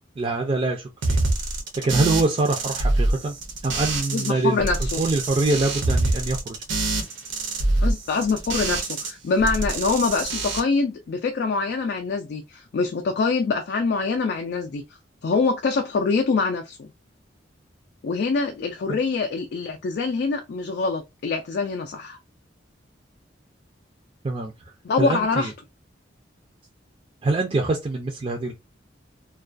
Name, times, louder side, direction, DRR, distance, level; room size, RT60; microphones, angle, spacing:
voice 1, 0.2-1.2 1.8-3.3 3.6-4.6 5.0-6.5 18.9-19.0 24.2-24.5 25.0-25.5 27.2-28.5, right 3 dB, 30° right, 0.4 m, -24 dB
sound 1, 1.0-4.3 4.6-9.1 9.4-10.6, right 2 dB, 80° right, 0.6 m, -25 dB
voice 2, 4.1-5.0 7.8-14.8 15.2-16.9 18.0-22.2 24.8-25.5, left 4 dB, 60° left, 0.3 m, -24 dB
2.3 x 2.2 x 2.4 m
head